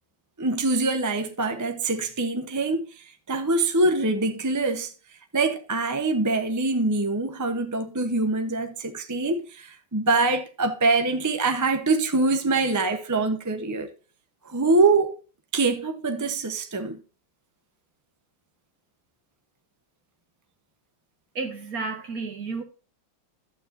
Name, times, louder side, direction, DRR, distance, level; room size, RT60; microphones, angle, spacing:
voice 1, 0.4-4.9 5.3-13.9 14.4-15.2 15.5-17.0, right 3 dB, 20° right, 0.4 m, -24 dB
voice 2, 21.4-22.6, right 4 dB, 50° right, 2.1 m, -31 dB
12.0 x 8.7 x 2.6 m
omnidirectional pair, 2.1 m